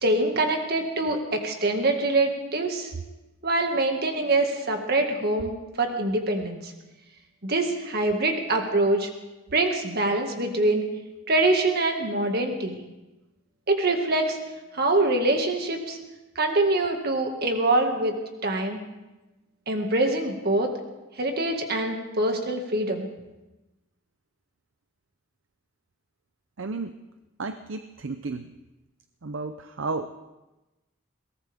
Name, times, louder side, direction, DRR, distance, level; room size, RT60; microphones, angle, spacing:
voice 1, 0.0-2.9 3.4-6.7 7.4-9.1 9.5-10.9 11.3-12.8 13.7-14.4 14.7-16.0 16.4-18.8 19.7-20.7 21.2-23.1, right 2 dB, 50° right, 4 dB, 2.0 m, -24 dB
voice 2, 26.6-27.0 27.4-28.5 29.2-30.2, right 3 dB, 65° right, 9 dB, 0.6 m, -33 dB
22.0 x 18.0 x 3.6 m, 1.0 s
head